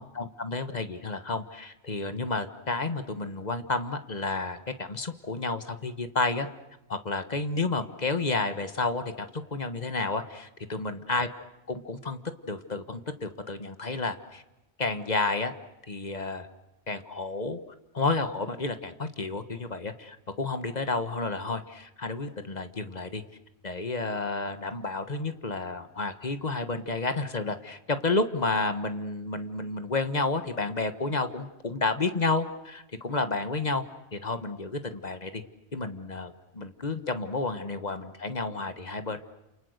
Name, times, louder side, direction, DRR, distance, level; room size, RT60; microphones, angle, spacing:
voice 1, 0.0-6.5 6.9-11.3 11.7-12.2 12.5-14.4 14.8-15.5 15.9-16.5 16.9-17.6 17.9-23.2 23.6-33.8 34.1-35.4 35.7-39.2, left 3 dB, 40° left, 9 dB, 1.4 m, -31 dB
29.0 x 28.5 x 6.6 m, 0.95 s
omnidirectional pair, 1.1 m